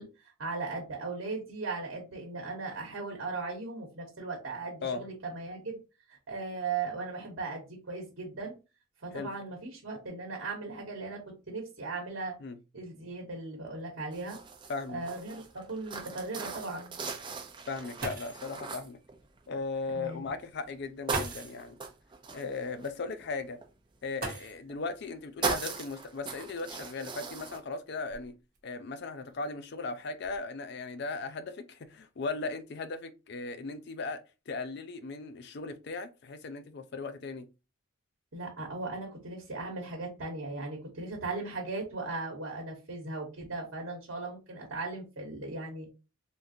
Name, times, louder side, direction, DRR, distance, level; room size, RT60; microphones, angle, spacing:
voice 1, 0.0-5.8 6.1-8.5 9.0-12.3 12.7-14.4 14.9-16.9 19.9-20.2 38.3-45.9, right 3 dB, 65° right, 1.0 m, -38 dB
sound 1, 14.1-19.7 20.2-20.7 21.1-23.7 24.7-25.1 25.4-27.6, right 4 dB, 20° right, 0.4 m, -39 dB
voice 2, 14.7-15.0 17.7-19.0 19.5-21.8 22.3-23.6 24.0-28.4 28.6-34.2 34.5-37.5, left 3 dB, 50° left, 0.4 m, -37 dB
sound 2, 18.0-18.6 19.8-19.9 21.1-21.7 24.1-24.9 26.3-26.4 27.1-28.6 29.3-29.6 30.0-30.4, right 2 dB, 40° right, 1.0 m, -40 dB
3.5 x 2.5 x 2.7 m
head